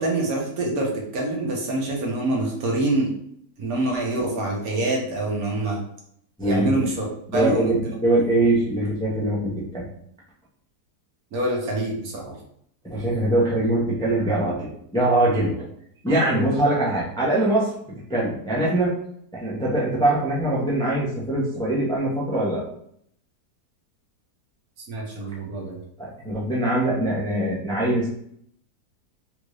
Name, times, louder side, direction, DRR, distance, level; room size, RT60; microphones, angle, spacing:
voice 1, 0.0-3.1 3.6-5.8 6.4-7.0 7.3-7.7 11.3-12.3 24.9-25.8, right 2 dB, 65° right, -1 dB, 1.3 m, -25 dB
voice 2, 6.4-6.9 7.3-9.9 12.8-15.7 16.0-19.0 19.3-22.6 26.0-28.1, right 1 dB, 5° left, -6 dB, 0.4 m, -23 dB
3.5 x 2.5 x 3.0 m, 0.69 s
omnidirectional pair, 1.8 m